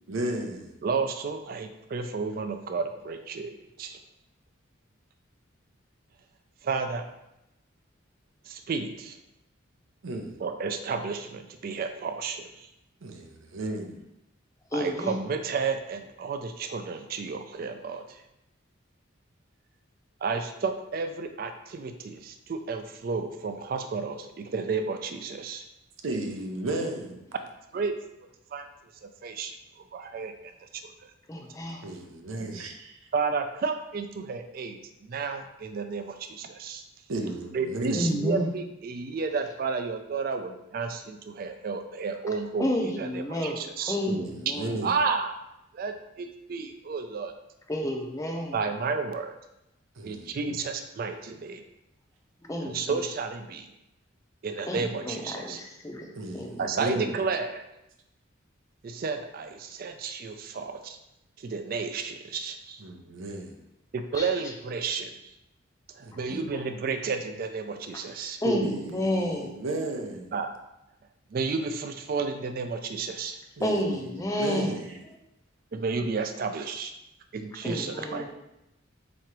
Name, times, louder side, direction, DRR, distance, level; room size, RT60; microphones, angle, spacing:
voice 1, 0.1-0.7 10.0-10.3 13.0-13.9 26.0-27.2 31.8-32.9 37.1-38.1 44.1-45.0 50.0-50.6 56.2-57.1 62.8-63.5 66.0-66.4 68.4-70.3 73.6-75.0, right 1 dB, 75° right, 0.7 m, -34 dB
voice 2, 0.8-4.0 6.6-7.0 8.5-9.2 10.4-12.7 14.7-18.2 20.2-25.7 27.7-28.0 28.5-28.6 29.0-29.6 29.9-30.9 33.1-36.8 37.5-44.0 44.8-45.3 45.7-47.3 48.5-49.3 50.0-51.6 52.6-53.7 54.4-55.6 56.6-57.6 58.8-61.0 61.4-62.8 63.9-65.1 66.0-68.4 70.3-70.5 71.3-73.4 75.7-76.9 77.3-78.3, right 4 dB, 45° right, 0.3 m, -32 dB
voice 3, 14.7-15.2 31.3-31.8 37.9-38.5 42.6-43.6 43.9-44.8 47.7-48.6 52.4-53.0 54.7-56.1 56.3-56.7 64.1-64.3 66.3-66.6 67.9-68.0 68.4-69.5 73.6-74.8 77.6-78.3, equal, 15° left, 0.5 m, -30 dB
3.8 x 3.1 x 4.5 m
head